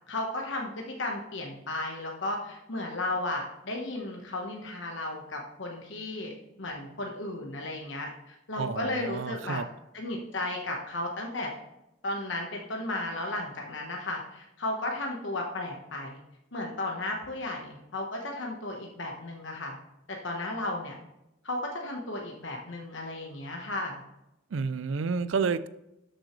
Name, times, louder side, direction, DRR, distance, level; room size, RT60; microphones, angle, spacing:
voice 1, 0.1-6.3 6.6-9.6 9.9-11.5 12.0-16.2 16.5-19.7 20.2-20.9 21.4-24.0, left 2 dB, 65° left, 1.2 m, -34 dB
voice 2, 8.6-9.7 24.5-25.7, right 5 dB, 70° right, 0.4 m, -30 dB
12.5 x 6.2 x 3.2 m
head